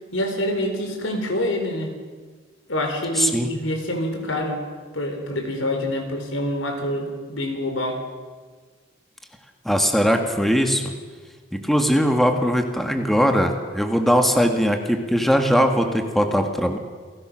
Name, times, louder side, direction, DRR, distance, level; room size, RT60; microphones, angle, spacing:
voice 1, 0.1-1.9 2.7-4.6 4.9-8.0, left 1 dB, 90° left, 4 dB, 4.2 m, -26 dB
voice 2, 3.2-3.5 9.6-10.9 11.5-16.8, equal, ahead, 4 dB, 1.7 m, -20 dB
28.5 x 17.5 x 6.4 m, 1.5 s
head